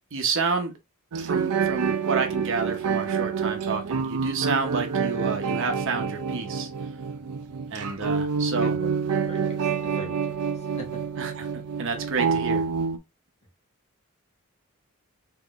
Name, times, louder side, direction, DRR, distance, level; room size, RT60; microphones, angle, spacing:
voice 1, 0.1-0.7 1.2-6.7 7.7-8.8 11.2-11.5 11.8-12.6, right 4 dB, 60° right, 0.8 m, -29 dB
sound 1, 1.1-13.0, right 6 dB, 90° right, 0.5 m, -27 dB
voice 2, 9.2-10.9, right 1 dB, 30° left, 1.3 m, -41 dB
3.7 x 3.0 x 2.4 m
head